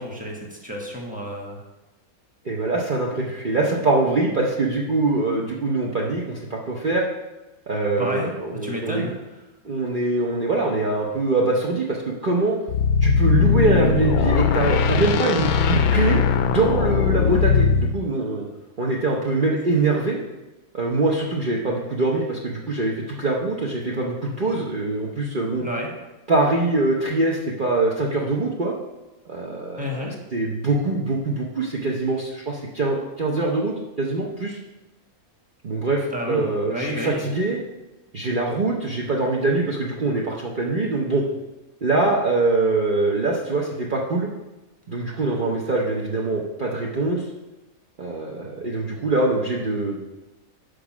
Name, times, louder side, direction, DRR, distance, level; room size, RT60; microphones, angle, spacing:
voice 1, 0.0-1.6 8.0-8.3 8.6-9.1 25.6-25.9 29.8-30.1 36.1-37.3, left 1 dB, 5° right, -1 dB, 1.4 m, -30 dB
voice 2, 2.4-7.0 7.7-9.0 9.6-12.6 13.0-18.5 18.8-20.2 20.7-25.6 26.3-28.7 29.3-34.6 35.6-37.6 38.1-41.2 41.8-44.3 44.9-47.2 48.0-50.0, right 2 dB, 40° right, -3 dB, 0.9 m, -23 dB
sound 1, 12.7-17.9, left 6 dB, 85° left, 1.1 m, -19 dB
6.5 x 5.2 x 6.0 m, 1.0 s
omnidirectional pair, 1.5 m